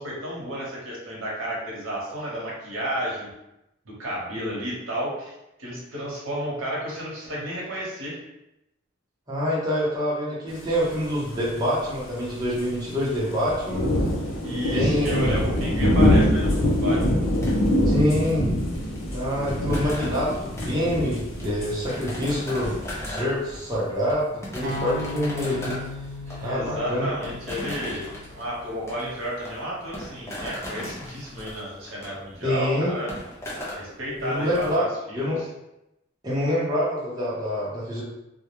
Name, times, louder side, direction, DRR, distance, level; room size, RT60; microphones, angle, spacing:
voice 1, 0.0-3.3 3.9-5.3 5.6-8.2 14.4-17.0 26.3-33.1 33.8-35.5, equal, 85° right, -4 dB, 0.8 m, -32 dB
voice 2, 9.3-13.9 14.7-15.5 17.9-18.5 19.1-25.8 26.4-27.1 32.4-32.9 34.2-34.8 35.1-35.4 36.2-38.0, equal, 20° right, -8 dB, 0.7 m, -26 dB
sound 1, 11.4-11.5 11.6-11.7 12.1-12.3 12.5-12.9 13.3-23.0, left 1 dB, 90° left, 0.7 m, -24 dB
sound 2, 17.4-34.7, equal, 15° left, 0.5 m, -38 dB
sound 3, 24.6-28.8, left 1 dB, 45° right, 0.3 m, -37 dB
2.3 x 2.1 x 2.9 m, 0.89 s
head